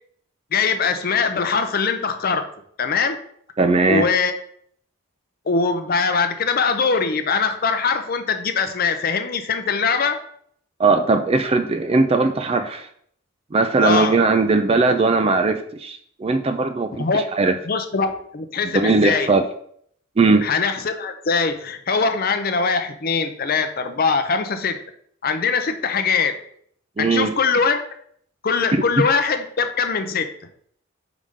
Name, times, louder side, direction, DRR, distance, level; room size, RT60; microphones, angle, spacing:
voice 1, 0.5-2.5 2.8-3.2 3.8-4.3 5.5-10.2 13.8-14.2 17.0-17.2 17.7-19.3 20.4-24.8 25.2-26.4 27.0-27.8 28.4-30.3, left 5 dB, 40° left, 8 dB, 0.6 m, -22 dB
voice 2, 3.6-4.1 10.8-12.9 13.5-17.5 18.7-19.4 20.2-20.5 27.0-27.3 28.7-28.8, right 3 dB, 25° right, 8 dB, 0.4 m, -19 dB
5.4 x 4.9 x 3.6 m, 0.64 s
head